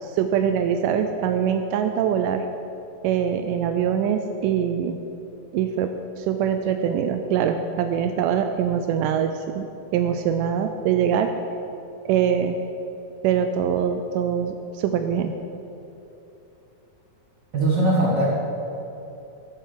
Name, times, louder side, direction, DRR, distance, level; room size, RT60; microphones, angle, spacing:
voice 1, 0.0-2.5 3.0-5.0 5.5-9.7 9.9-11.3 12.1-12.6 13.2-15.3, right 8 dB, 90° right, 7 dB, 2.2 m, -23 dB
voice 2, 17.5-18.2, right 1 dB, 40° right, -6 dB, 1.9 m, -20 dB
19.5 x 7.6 x 5.1 m, 2.9 s
omnidirectional pair, 3.7 m